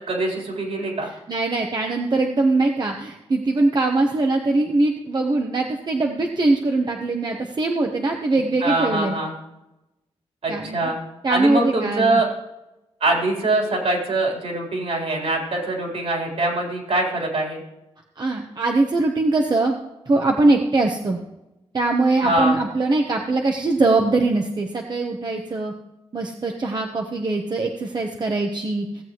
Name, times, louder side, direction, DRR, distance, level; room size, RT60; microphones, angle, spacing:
voice 1, 0.1-1.1 8.6-9.3 10.4-11.0 11.3-12.3 13.0-17.6 22.2-22.6, right 2 dB, 70° right, -1 dB, 3.8 m, -23 dB
voice 2, 1.3-9.1 10.5-10.9 11.2-12.2 18.2-19.7 20.1-21.2 21.7-25.7 26.1-28.9, right 2 dB, 40° right, 2 dB, 1.0 m, -22 dB
17.0 x 7.6 x 3.0 m, 0.95 s
cardioid pair, 90°, 11 cm